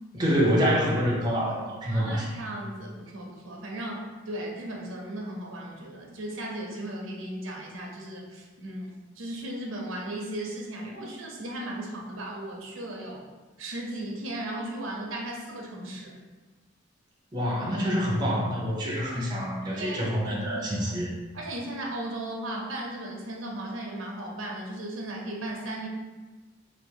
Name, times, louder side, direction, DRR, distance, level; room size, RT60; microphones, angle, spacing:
voice 1, 0.1-2.2 17.3-21.1, equal, 20° right, -4 dB, 0.7 m, -26 dB
voice 2, 1.8-13.3 13.6-16.1 19.7-20.9 21.3-25.9, right 1 dB, 85° right, -1 dB, 0.8 m, -36 dB
3.5 x 2.5 x 4.4 m, 1.3 s
head